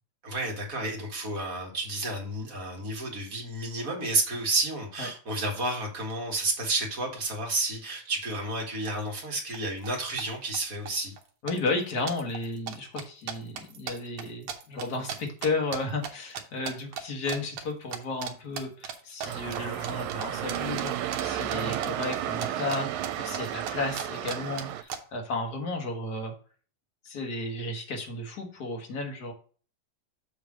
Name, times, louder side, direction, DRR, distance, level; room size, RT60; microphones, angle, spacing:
voice 1, 0.2-11.1, right 2 dB, 35° right, 0 dB, 1.7 m, -31 dB
sound 1, 8.9-9.0 9.2-9.6 9.8-10.6 10.9-11.2 11.5-16.1 16.3-17.0 17.3-17.7 17.9-18.3 18.6-22.8 23.0-25.0, right 7 dB, 65° right, 1.5 m, -36 dB
voice 2, 11.4-26.3 27.0-29.3, left 2 dB, 45° left, 2 dB, 1.3 m, -33 dB
sound 2, 19.2-24.8, right 11 dB, 85° right, 1.9 m, -33 dB
7.1 x 3.3 x 6.2 m, 0.40 s
omnidirectional pair, 3.3 m